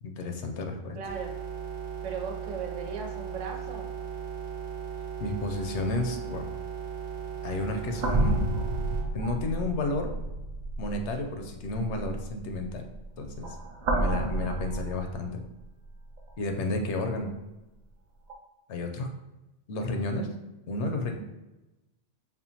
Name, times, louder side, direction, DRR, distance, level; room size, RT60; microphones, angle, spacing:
voice 1, 0.0-1.0 5.2-6.5 7.4-8.5 9.1-10.1 10.8-12.9 13.2-13.6 13.9-15.4 16.4-17.3 18.7-19.1 19.7-20.3 20.7-21.2, left 2 dB, 75° left, 4 dB, 0.8 m, -31 dB
voice 2, 0.9-1.3 2.0-3.9, right 5 dB, 90° right, 0 dB, 1.0 m, -37 dB
sound 1, 1.0-9.0, right 7 dB, 45° right, 1.1 m, -37 dB
sound 2, 7.3-15.6 16.2-16.3 18.3-18.4, right 2 dB, 60° right, 0.4 m, -31 dB
5.5 x 2.2 x 2.8 m, 1.0 s
omnidirectional pair, 1.2 m